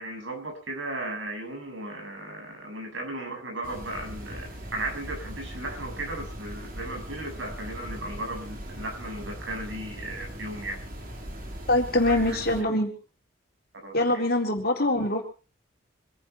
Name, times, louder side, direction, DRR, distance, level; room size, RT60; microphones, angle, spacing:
voice 1, 0.0-10.8 11.9-12.7 13.7-14.2, right 1 dB, 65° right, 3 dB, 7.0 m, -36 dB
sound 1, 3.6-12.6, equal, 45° right, 3.8 m, -39 dB
voice 2, 11.7-12.9 13.9-15.2, left 1 dB, 50° left, 3 dB, 3.9 m, -24 dB
25.5 x 11.0 x 4.5 m, 0.35 s
head